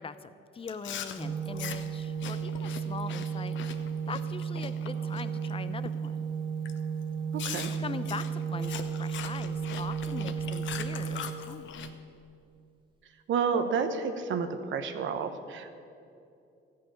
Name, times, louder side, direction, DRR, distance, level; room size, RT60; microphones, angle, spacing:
voice 1, 0.0-3.6 4.1-6.2 7.8-11.7, left 5 dB, 25° left, 13 dB, 0.6 m, -41 dB
Chewing mastication, 0.6-5.5 5.9-6.2 6.7-6.8 7.4-11.9, left 9 dB, 75° left, 0.8 m, -42 dB
Organ, 1.2-12.1, right 7 dB, 25° right, 1.7 m, -34 dB
voice 2, 7.3-7.7 13.3-15.7, right 6 dB, 75° right, 8 dB, 1.0 m, -30 dB
14.0 x 5.8 x 8.8 m, 2.6 s
cardioid pair, 90°, 20 cm